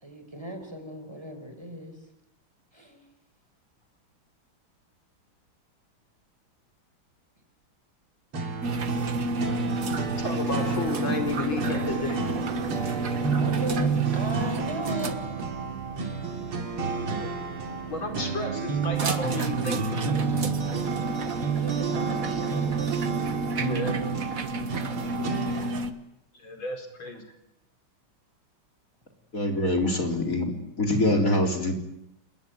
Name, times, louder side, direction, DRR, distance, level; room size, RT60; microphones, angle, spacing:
voice 1, 0.0-2.0 2.7-3.0 13.3-15.3 21.5-23.2, right 1 dB, 10° right, 7 dB, 4.8 m, -37 dB
sound 1, 8.3-25.8, right 5 dB, 85° right, 3.6 m, -30 dB
Velociraptor Tongue Flicker, 8.6-25.9, right 2 dB, 45° right, 1.8 m, -32 dB
voice 2, 10.2-12.2 17.2-17.3 17.9-20.1 23.6-24.0 26.3-27.2, left 2 dB, 70° left, 4 dB, 5.0 m, -32 dB
voice 3, 29.3-31.7, left 1 dB, 40° left, 2 dB, 4.3 m, -24 dB
29.5 x 17.5 x 9.5 m, 0.88 s
omnidirectional pair, 2.3 m